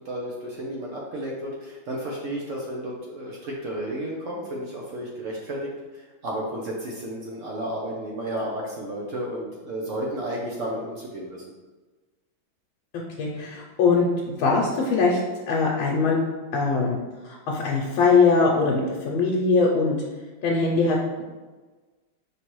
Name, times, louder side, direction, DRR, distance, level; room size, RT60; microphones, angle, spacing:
voice 1, 0.0-11.4, right 1 dB, 80° right, -2 dB, 0.7 m, -32 dB
voice 2, 13.2-15.2 15.5-16.2 16.5-17.0 17.2-20.0 20.4-21.2, left 4 dB, 90° left, -2 dB, 1.4 m, -21 dB
5.1 x 3.2 x 3.0 m, 1.3 s
omnidirectional pair, 2.1 m